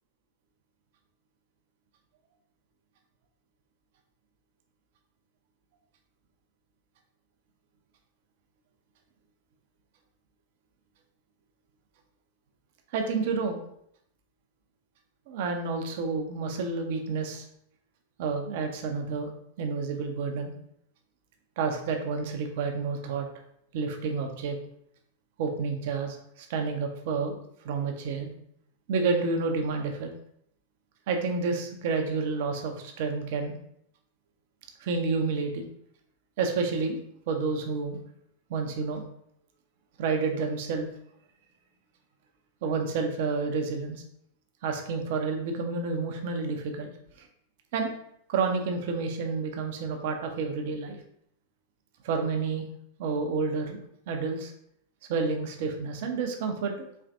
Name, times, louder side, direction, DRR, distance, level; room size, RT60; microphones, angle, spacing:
voice 1, 12.9-13.6 15.3-17.5 18.2-19.3 19.6-20.5 21.6-23.3 23.7-24.6 25.4-27.4 27.6-28.3 28.9-30.1 31.1-33.6 34.8-35.6 36.4-38.0 38.5-39.0 40.0-40.9 42.6-44.0 44.6-46.9 47.2-47.3 47.7-47.9 48.3-51.0 52.0-52.7 53.0-54.5 55.1-56.9, right 4 dB, 50° right, 4 dB, 0.6 m, -29 dB
4.3 x 3.2 x 2.5 m, 0.70 s
figure-of-eight pair, 90°, 0 cm